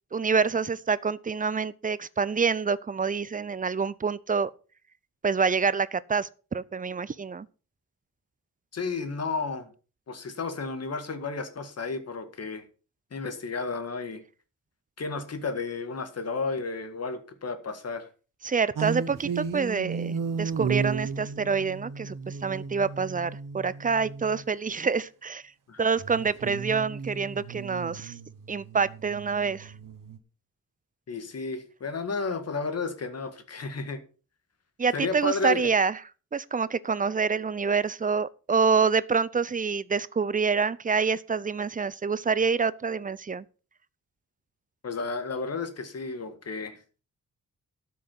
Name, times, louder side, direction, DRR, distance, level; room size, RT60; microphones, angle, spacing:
voice 1, 0.1-4.5 5.2-7.5 18.4-25.4 25.8-28.1 28.5-29.7 34.8-36.0 36.3-43.4, right 5 dB, 25° right, 0.5 m, -27 dB
voice 2, 8.7-9.7 10.1-12.6 13.1-14.2 15.0-18.1 25.7-25.9 31.1-34.0 34.9-35.7 44.8-46.8, left 4 dB, 50° left, 1.9 m, -32 dB
sound 1, 18.8-24.4 26.0-30.2, right 5 dB, 75° right, 1.3 m, -34 dB
12.5 x 6.3 x 5.6 m
wide cardioid pair, 125°, 32 cm